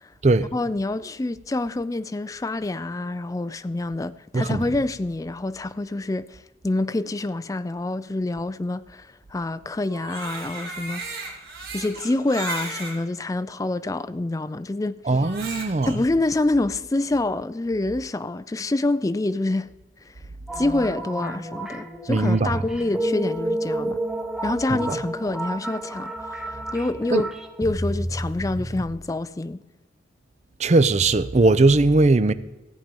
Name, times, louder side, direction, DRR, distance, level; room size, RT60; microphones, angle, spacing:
voice 1, 0.5-11.0 11.7-15.0 15.9-19.7 20.1-20.2 20.5-24.0 24.4-27.3 27.6-29.6, left 2 dB, 20° left, 0.3 m, -26 dB
voice 2, 4.3-4.6 15.1-15.9 22.1-22.6 24.7-25.0 27.1-27.2 30.6-32.3, right 2 dB, 35° right, 0.5 m, -19 dB
Crying sobbing, 9.8-13.0 13.7-13.8 15.1-15.9, right 3 dB, 55° right, 2.6 m, -35 dB
sound 1, 20.5-28.9, right 1 dB, ahead, 0.9 m, -31 dB
14.5 x 8.7 x 5.3 m
head